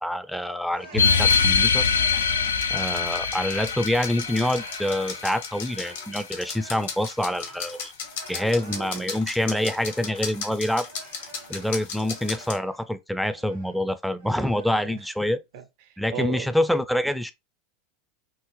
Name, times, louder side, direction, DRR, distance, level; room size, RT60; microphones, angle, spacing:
voice 1, 0.0-1.9 2.7-7.9 8.3-10.9 11.5-15.4 16.0-17.3, left 1 dB, ahead, 0.4 m, -26 dB
sound 1, 0.7-3.9 4.2-10.5 10.8-12.9 13.2-13.8 14.2-15.0, right 2 dB, 90° right, 1.5 m, -47 dB
sound 2, 0.9-6.0, left 6 dB, 85° left, 0.4 m, -24 dB
sound 3, 1.2-12.6, left 5 dB, 70° left, 1.0 m, -37 dB
voice 2, 8.4-9.1 14.8-15.0 15.3-16.5, right 11 dB, 60° right, 0.5 m, -37 dB
3.7 x 2.0 x 3.1 m
hypercardioid pair, 85°, 0 cm